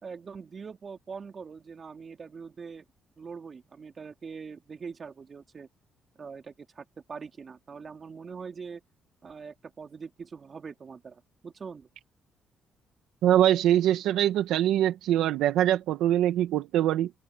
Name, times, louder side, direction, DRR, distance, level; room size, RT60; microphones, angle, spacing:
voice 1, 0.0-2.8 3.2-5.7 6.1-8.8 9.2-11.9, right 5 dB, 40° right, 3.3 m, -43 dB
voice 2, 13.2-17.1, right 12 dB, 85° right, 1.0 m, -23 dB
open air
cardioid pair, 90°, 0 cm